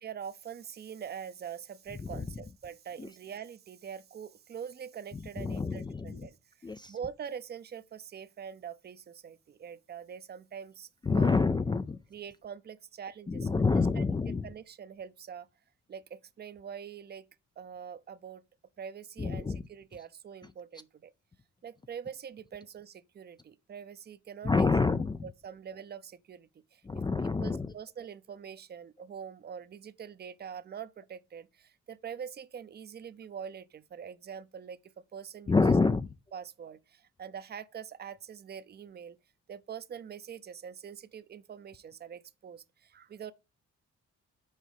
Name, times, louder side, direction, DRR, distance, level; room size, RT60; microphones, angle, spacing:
voice 1, 0.0-6.4 6.9-10.9 11.2-11.3 12.1-14.1 14.4-15.5 15.9-17.3 17.6-18.4 18.8-21.1 21.6-24.7 25.2-26.8 27.2-34.8 35.1-35.7 36.3-39.2 39.5-43.3, right 7 dB, 35° right, 0.6 m, -44 dB
voice 2, 5.4-6.3 6.6-6.9 11.1-12.0 13.3-14.5 19.2-19.6 24.4-25.2 26.8-27.7 35.5-36.1, left 4 dB, 15° left, 0.3 m, -27 dB
6.5 x 4.5 x 5.0 m
cardioid pair, 90°, 30 cm